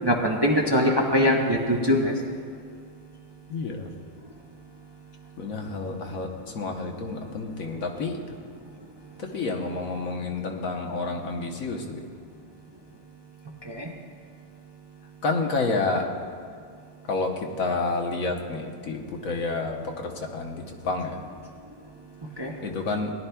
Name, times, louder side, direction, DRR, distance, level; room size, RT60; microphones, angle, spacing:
voice 1, 0.0-2.1 13.7-13.9 22.4-22.5, left 1 dB, 25° right, -1 dB, 0.7 m, -22 dB
voice 2, 3.5-3.9 5.4-8.4 9.2-12.0 15.2-16.1 17.0-21.2 22.6-23.1, left 3 dB, 70° left, 2 dB, 1.4 m, -29 dB
19.0 x 11.5 x 2.3 m, 2.1 s
omnidirectional pair, 1.5 m